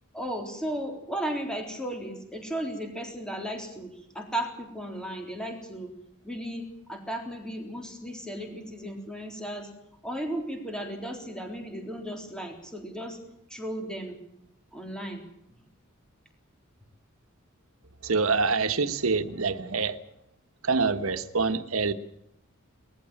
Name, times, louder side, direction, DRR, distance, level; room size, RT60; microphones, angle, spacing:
voice 1, 0.1-5.9 6.2-9.7 10.0-13.2 13.5-14.2 14.7-15.2, right 1 dB, 5° left, 3.7 m, -35 dB
voice 2, 18.0-20.0 20.6-21.9, right 4 dB, 85° right, 1.3 m, -26 dB
20.5 x 15.0 x 9.0 m
head